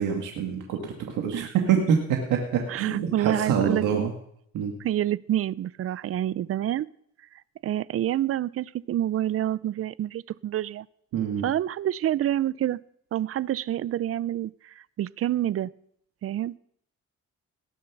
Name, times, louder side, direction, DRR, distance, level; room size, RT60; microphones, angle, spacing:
voice 1, 0.0-2.0 2.3-4.1 4.5-4.7 11.1-11.4, right 7 dB, 90° right, 2 dB, 1.7 m, -26 dB
voice 2, 2.7-4.1 4.8-6.9 7.6-10.9 11.4-12.8 13.1-15.7 16.2-16.6, right 12 dB, 50° right, 21 dB, 0.5 m, -28 dB
18.5 x 7.3 x 6.0 m, 0.70 s
cardioid pair, 90°, 30 cm